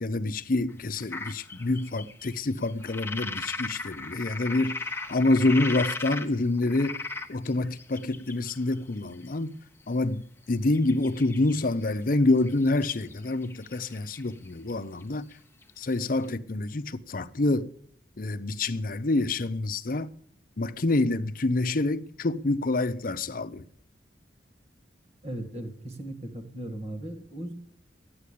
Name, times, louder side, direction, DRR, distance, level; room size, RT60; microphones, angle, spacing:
voice 1, 0.0-7.0 7.3-9.6 9.9-15.3 15.8-17.7 18.2-20.1 20.6-23.6, left 2 dB, 50° left, 0.7 m, -27 dB
sound 1, 1.0-6.3 6.6-9.1 10.7-11.6 11.9-12.2 12.5-14.7 15.0-15.1 15.3-15.4 15.6-15.7 15.9-16.0 16.2-16.3, left 3 dB, 15° left, 1.0 m, -37 dB
voice 2, 25.2-27.5, right 1 dB, 35° right, 2.0 m, -37 dB
13.0 x 9.5 x 8.4 m
head